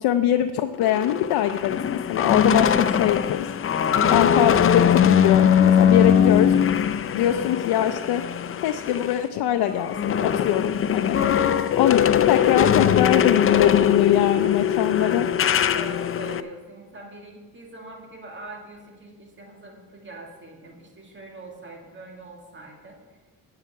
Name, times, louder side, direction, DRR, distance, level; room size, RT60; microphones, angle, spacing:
voice 1, 0.0-3.5 4.1-6.5 7.1-8.2 8.6-11.2 11.8-12.0 12.3-15.3, left 11 dB, 85° left, 8 dB, 0.6 m, -22 dB
sound 1, 0.8-9.2 9.6-16.4, left 8 dB, 35° left, 0.5 m, -21 dB
voice 2, 11.1-11.7 12.0-12.5 13.0-13.1 14.8-23.0, right 2 dB, 30° right, 0 dB, 2.1 m, -42 dB
10.5 x 5.7 x 8.3 m, 1.3 s
cardioid pair, 105°, 37 cm